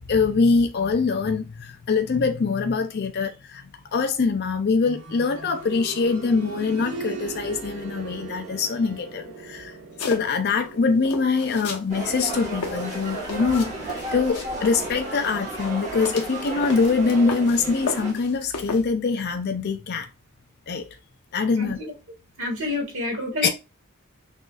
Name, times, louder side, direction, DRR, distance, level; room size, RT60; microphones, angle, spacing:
voice 1, 0.1-3.6 3.9-9.8 10.1-20.1 20.7-20.9 21.3-21.8 23.4-23.5, left 4 dB, 45° left, 0.5 m, -23 dB
sound 1, 4.8-15.6 15.9-16.0 16.9-17.0, right 3 dB, 85° right, 1.3 m, -40 dB
sound 2, 10.0-10.6 11.0-11.9 12.2-14.9 15.5-17.6 17.9-18.9, left 3 dB, 90° left, 1.0 m, -34 dB
sound 3, 11.9-18.1, right 2 dB, 30° right, 1.3 m, -33 dB
voice 2, 21.6-21.9 22.4-23.5, left 2 dB, 60° right, 1.7 m, -28 dB
6.2 x 2.7 x 2.3 m
head